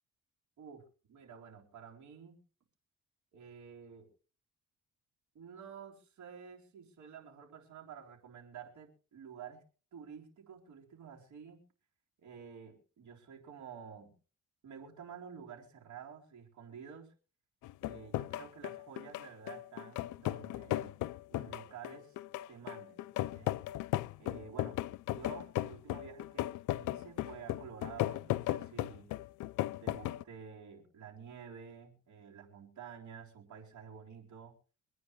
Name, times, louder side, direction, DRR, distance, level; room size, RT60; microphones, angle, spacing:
voice 1, 0.6-2.4 3.3-4.1 5.3-9.6 9.9-11.6 12.2-14.1 14.6-17.1 17.8-20.9 21.3-22.2 22.5-23.0 23.3-23.5 24.2-24.8 25.1-26.5 26.8-29.1 29.8-34.5, right 7 dB, 70° right, 1 dB, 3.7 m, -50 dB
sound 1, 17.6-30.2, left 15 dB, 85° left, 0.6 m, -36 dB
24.5 x 9.4 x 3.2 m, 0.38 s
cardioid pair, 90°, 30 cm